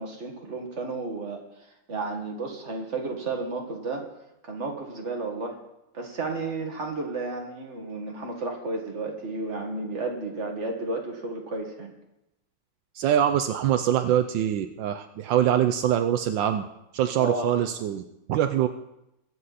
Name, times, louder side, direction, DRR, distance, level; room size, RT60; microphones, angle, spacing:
voice 1, 0.0-1.4 1.9-4.1 4.4-5.6 5.9-11.9 17.2-17.5, right 3 dB, 40° right, 1 dB, 2.1 m, -32 dB
voice 2, 12.9-16.7 16.9-18.0 18.3-18.7, right 10 dB, 80° right, 7 dB, 1.4 m, -24 dB
23.0 x 7.9 x 4.2 m, 0.87 s
omnidirectional pair, 2.0 m